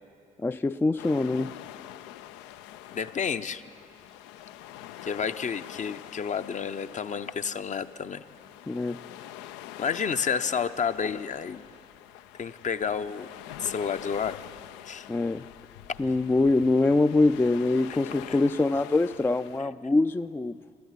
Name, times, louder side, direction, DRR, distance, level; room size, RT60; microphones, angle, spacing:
voice 1, 0.4-1.5 8.7-9.0 15.1-15.4 16.0-20.6, left 2 dB, 10° left, 11 dB, 0.3 m, -24 dB
sound 1, 1.0-19.6, left 13 dB, 80° left, 0.4 m, -45 dB
voice 2, 2.9-3.6 5.0-8.2 9.8-11.6 12.4-13.3 13.6-14.4 14.8-15.1 17.9-18.0 18.3-18.4 19.6-19.7, left 6 dB, 40° left, 11 dB, 0.7 m, -30 dB
14.0 x 12.5 x 7.4 m, 2.5 s
hypercardioid pair, 50°, 18 cm